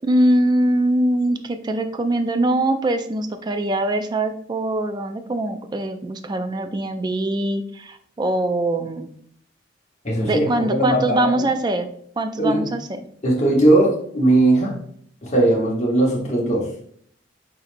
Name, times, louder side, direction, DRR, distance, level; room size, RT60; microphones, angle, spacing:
voice 1, 0.0-9.1 10.3-11.9 12.2-13.0, right 1 dB, 20° right, 8 dB, 0.3 m, -22 dB
voice 2, 10.0-11.3 12.4-12.6 13.2-14.7 15.2-16.7, right 1 dB, 35° left, -3 dB, 1.1 m, -18 dB
4.1 x 4.0 x 2.5 m, 0.64 s
head